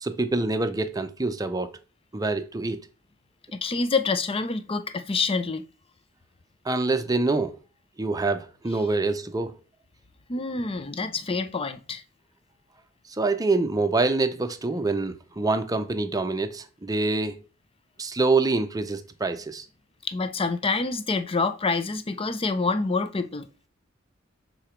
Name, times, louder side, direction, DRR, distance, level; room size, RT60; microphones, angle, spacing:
voice 1, 0.0-1.8 2.1-2.8 6.6-7.6 8.0-9.5 13.2-17.4 18.0-19.6, right 3 dB, 15° right, 0.6 m, -25 dB
voice 2, 3.5-5.6 10.3-12.0 20.0-23.5, left 4 dB, 25° left, 0.6 m, -27 dB
7.0 x 3.9 x 4.5 m
head